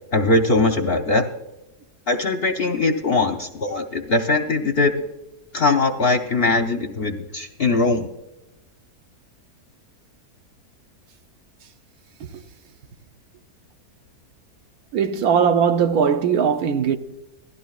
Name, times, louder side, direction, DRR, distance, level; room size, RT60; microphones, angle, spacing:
voice 1, 0.1-1.2 2.1-4.9 5.5-8.1, left 3 dB, 50° left, 0.8 m, -20 dB
voice 2, 14.9-17.0, right 7 dB, 75° right, 1.2 m, -19 dB
16.5 x 12.5 x 2.4 m
omnidirectional pair, 1.7 m